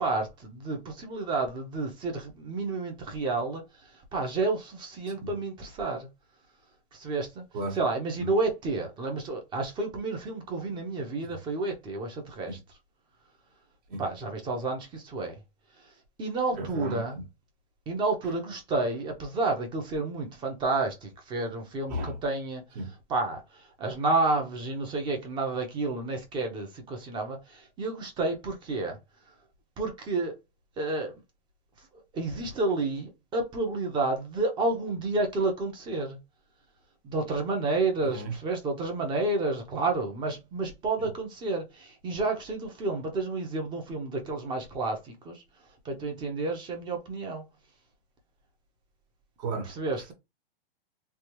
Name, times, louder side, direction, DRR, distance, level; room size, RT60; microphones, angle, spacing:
voice 1, 0.0-3.6 4.1-6.1 6.9-7.4 7.7-12.6 14.0-15.3 16.2-17.2 17.9-22.6 23.1-29.0 29.8-30.3 30.8-31.2 32.1-36.2 37.0-45.4 45.8-47.4 49.6-50.1, right 3 dB, 15° right, 0.8 m, -30 dB
voice 2, 16.6-17.0 21.9-22.1 22.8-22.9 38.0-38.3 41.0-41.1 49.4-49.7, right 2 dB, 45° right, 1.3 m, -33 dB
3.3 x 2.6 x 3.0 m
hypercardioid pair, 155°, 30 cm